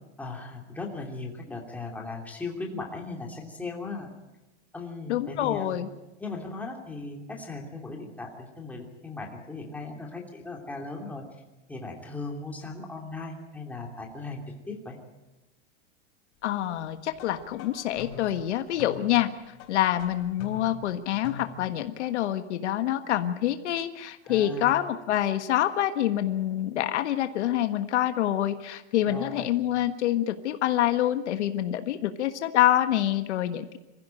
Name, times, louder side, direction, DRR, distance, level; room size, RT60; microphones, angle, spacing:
voice 1, 0.2-4.1 4.7-5.8 6.2-11.2 11.7-15.0 24.2-24.7 29.0-29.5, left 3 dB, 5° left, -1 dB, 3.0 m, -38 dB
voice 2, 5.1-5.9 16.4-19.3 19.7-33.8, left 12 dB, 70° left, 8 dB, 1.6 m, -26 dB
sound 1, 17.1-21.9, left 5 dB, 40° left, 4.6 m, -45 dB
25.5 x 15.5 x 9.0 m, 1.0 s
supercardioid pair, 160°, 35 cm